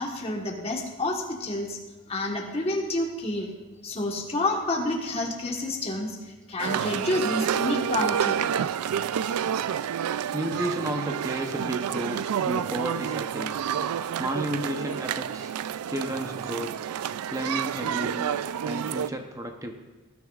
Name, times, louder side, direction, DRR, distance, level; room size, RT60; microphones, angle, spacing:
voice 1, 0.0-1.8 2.1-3.5 3.8-8.5, left 1 dB, 30° left, 1 dB, 1.3 m, -29 dB
sound 1, 6.6-19.1, right 8 dB, 85° right, 0.3 m, -29 dB
voice 2, 10.3-13.5 14.2-15.5 15.9-16.7 17.3-18.3 18.6-19.7, right 1 dB, 15° right, 4 dB, 0.7 m, -32 dB
19.0 x 9.4 x 2.4 m, 1.2 s
head